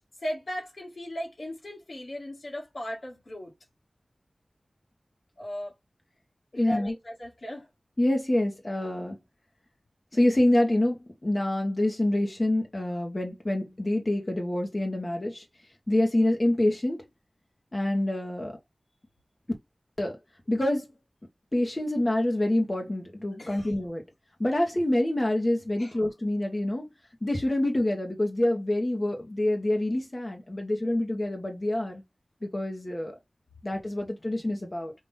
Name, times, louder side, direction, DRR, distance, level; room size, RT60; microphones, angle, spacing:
voice 1, 0.2-3.5 5.4-5.7 6.5-7.7 23.4-23.7 25.8-25.9, equal, 75° left, 1.9 m, -37 dB
voice 2, 6.5-6.9 8.0-9.2 10.1-15.4 15.9-17.0 17.7-18.6 20.0-20.2 20.5-20.9 21.5-24.0 24.4-26.9 27.2-32.0 32.4-33.1 33.6-34.9, left 1 dB, 35° left, 1.0 m, -26 dB
5.4 x 2.5 x 3.4 m
wide cardioid pair, 55°, 0 cm